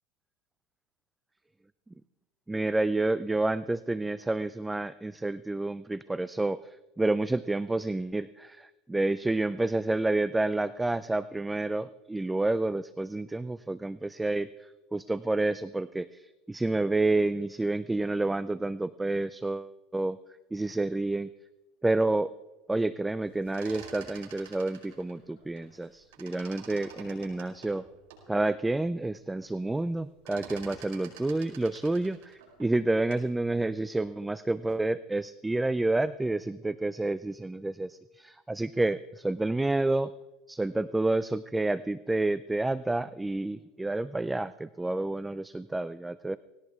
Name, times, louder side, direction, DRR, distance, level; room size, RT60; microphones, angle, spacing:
voice 1, 2.5-20.2 20.5-21.3 21.8-22.3 22.7-27.8 28.3-40.1 40.5-46.4, right 2 dB, 10° right, 16 dB, 0.4 m, -29 dB
sound 1, 23.3-25.9 26.1-28.3 28.8-28.9 29.1-29.5 29.8-33.3, right 7 dB, 90° right, 5.2 m, -48 dB
19.0 x 17.5 x 3.6 m, 1.1 s
supercardioid pair, 125°, 0 cm